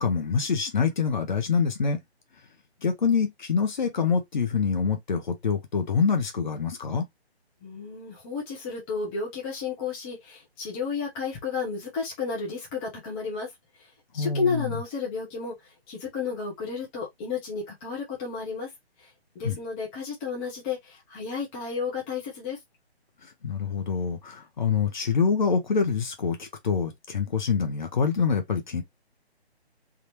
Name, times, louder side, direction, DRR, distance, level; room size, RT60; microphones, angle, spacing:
voice 1, 0.0-2.0 2.8-7.1 14.2-14.8 19.4-19.6 23.4-28.8, left 5 dB, 45° left, 1.0 m, -25 dB
voice 2, 7.6-13.5 14.1-15.5 15.9-18.7 19.3-22.6, left 5 dB, 10° left, 0.8 m, -32 dB
3.6 x 2.7 x 2.9 m
figure-of-eight pair, 145°, 33 cm